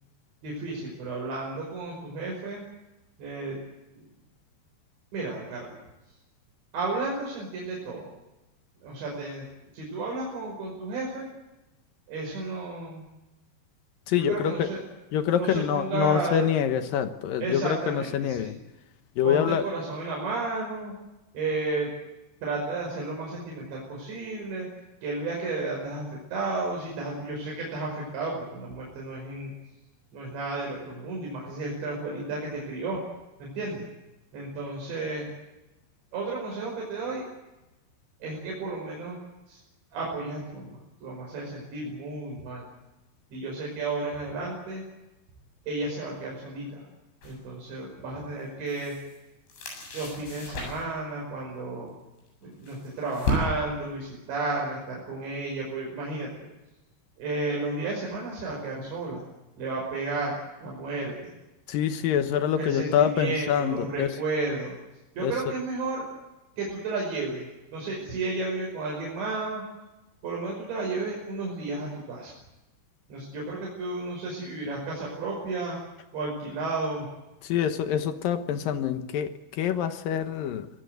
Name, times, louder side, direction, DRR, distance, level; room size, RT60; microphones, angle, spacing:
voice 1, 0.4-2.6 3.2-3.6 3.9-4.1 5.1-5.8 6.7-8.1 8.8-11.3 12.1-13.0 14.2-14.8 15.3-16.5 17.4-18.5 19.2-20.9 21.3-21.9 22.4-24.7 25.0-29.5 30.1-33.0 33.4-33.9 34.3-35.3 36.1-37.2 38.2-39.2 39.5-39.6 39.9-42.7 43.3-44.8 45.7-46.9 47.2-48.9 49.9-51.9 52.4-56.5 57.2-59.2 59.6-61.3 62.6-64.8 65.2-66.1 66.6-69.6 70.2-72.3 73.1-75.8 76.1-77.1, right 3 dB, 75° right, -2 dB, 7.8 m, -32 dB
voice 2, 14.1-14.7 15.1-18.6 19.2-19.6 61.7-64.1 65.2-65.3 77.4-80.7, left 9 dB, 70° left, 9 dB, 2.3 m, -26 dB
sound 1, 47.2-47.4 48.4-49.2 49.5-51.0 52.2-53.8, left 1 dB, 85° left, 10.0 m, -33 dB
25.5 x 19.5 x 8.1 m, 1.0 s
omnidirectional pair, 5.2 m